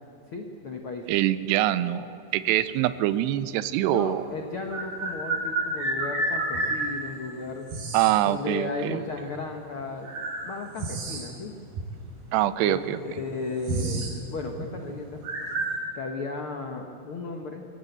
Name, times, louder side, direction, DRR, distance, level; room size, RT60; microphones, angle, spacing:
voice 1, 0.3-1.1 3.9-7.7 8.2-10.1 10.4-11.5 12.6-14.0 14.3-15.2 15.9-17.6, left 3 dB, 85° left, 3 dB, 1.2 m, -35 dB
voice 2, 1.1-4.2 7.9-9.0 12.3-13.0, right 14 dB, 90° right, 14 dB, 2.8 m, -24 dB
sound 1, 3.5-3.6 4.7-6.8 7.7-8.2 9.3-9.4 10.0-11.4 11.7-11.9 12.7-12.8 13.1-14.2 14.4-14.7 15.2-15.8, right 2 dB, 60° right, 5.4 m, -30 dB
24.0 x 17.5 x 8.1 m, 2.7 s
omnidirectional pair, 4.7 m